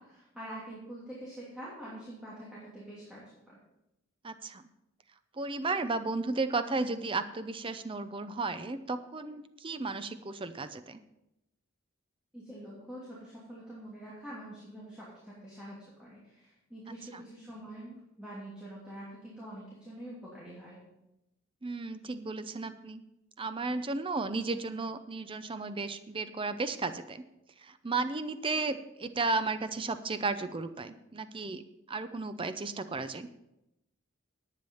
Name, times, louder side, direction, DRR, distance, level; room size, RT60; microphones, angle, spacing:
voice 1, 0.0-3.6 12.3-20.8, right 1 dB, 5° right, -7 dB, 2.9 m, -46 dB
voice 2, 4.2-4.6 5.3-11.0 17.1-17.2 21.6-23.0 23.4-27.2 27.6-31.6 31.9-33.3, right 3 dB, 25° right, 10 dB, 0.6 m, -34 dB
10.5 x 8.8 x 5.6 m, 0.87 s
head